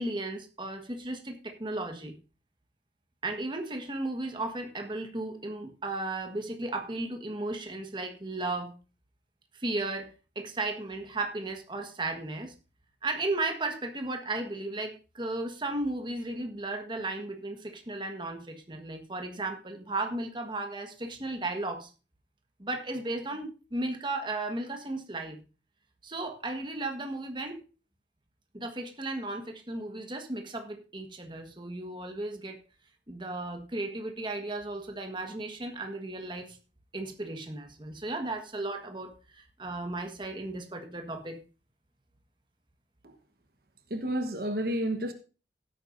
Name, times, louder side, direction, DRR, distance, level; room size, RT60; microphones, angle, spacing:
voice 1, 0.0-2.2 3.2-8.7 9.5-12.5 13.0-21.9 22.6-25.4 26.0-27.6 28.5-32.6 33.1-36.6 36.9-41.4, right 2 dB, 25° right, 1.5 m, -35 dB
voice 2, 43.9-45.1, right 1 dB, 55° right, 1.2 m, -30 dB
16.5 x 9.1 x 2.6 m
head